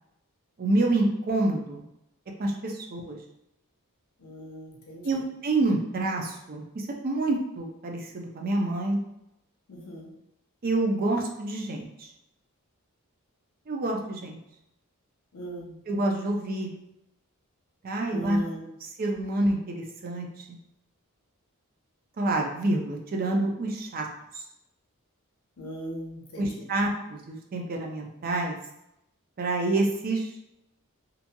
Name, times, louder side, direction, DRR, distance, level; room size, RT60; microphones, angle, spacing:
voice 1, 0.6-1.9 2.4-3.2 5.0-9.0 10.6-12.1 13.7-14.4 15.9-16.7 17.8-18.4 19.0-20.3 22.2-24.1 26.4-28.6 29.4-30.3, right 2 dB, 45° right, 1 dB, 0.4 m, -27 dB
voice 2, 4.2-5.3 9.7-10.1 15.3-15.8 18.1-18.7 25.6-26.7, right 1 dB, 80° left, -1 dB, 0.8 m, -39 dB
2.9 x 2.6 x 2.2 m, 0.82 s
head